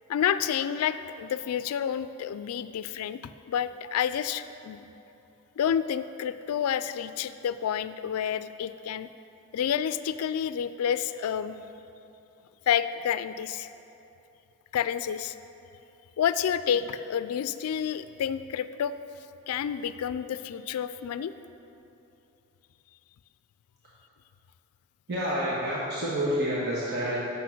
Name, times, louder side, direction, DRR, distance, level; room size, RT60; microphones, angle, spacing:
voice 1, 0.1-3.2 3.5-4.9 5.6-9.1 9.5-11.6 12.7-13.7 14.7-15.3 16.2-18.9 19.5-21.3, left 8 dB, 85° left, 14 dB, 0.3 m, -29 dB
voice 2, 25.1-27.2, equal, 50° right, -7 dB, 1.2 m, -28 dB
8.4 x 5.6 x 5.9 m, 2.9 s
head